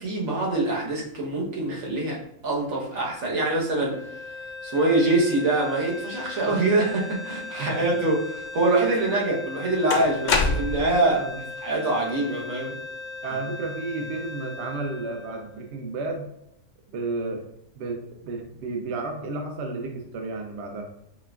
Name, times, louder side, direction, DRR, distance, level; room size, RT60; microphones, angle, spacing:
voice 1, 0.0-4.0 4.6-11.2 11.6-12.7, right 2 dB, 85° right, -3 dB, 1.4 m, -24 dB
sound 1, 3.9-16.1, left 3 dB, 55° left, 0.7 m, -38 dB
sound 2, 8.9-9.0 9.9-11.0, left 3 dB, 85° left, 0.4 m, -24 dB
voice 2, 11.1-11.4 13.2-16.3 16.9-17.4 17.8-20.9, right 3 dB, 65° right, 3 dB, 0.8 m, -32 dB
4.4 x 3.2 x 2.3 m, 0.78 s
omnidirectional pair, 1.4 m